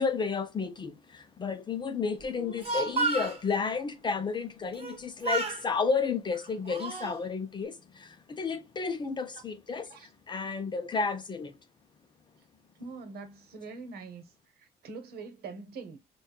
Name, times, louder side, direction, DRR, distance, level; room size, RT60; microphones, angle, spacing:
voice 1, 0.0-9.9 10.3-11.6, left 5 dB, 25° left, 0.5 m, -32 dB
Speech, 2.4-3.4 4.7-5.0 5.2-5.6 6.3-7.2, right 3 dB, 35° right, 1.0 m, -31 dB
voice 2, 12.8-14.2 14.6-16.0, right 4 dB, 65° right, 1.0 m, -43 dB
4.3 x 2.3 x 2.3 m
cardioid pair, 110°, 17 cm